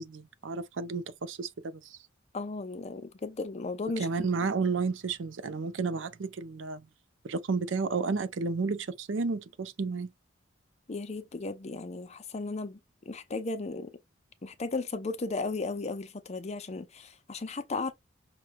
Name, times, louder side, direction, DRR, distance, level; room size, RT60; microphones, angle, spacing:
voice 1, 0.0-1.8 4.0-6.8 7.2-10.1, right 4 dB, 75° right, 0.5 m, -32 dB
voice 2, 2.3-4.3 10.9-12.8 13.1-13.9 14.4-17.9, left 3 dB, 35° left, 0.5 m, -35 dB
5.9 x 2.3 x 2.5 m
head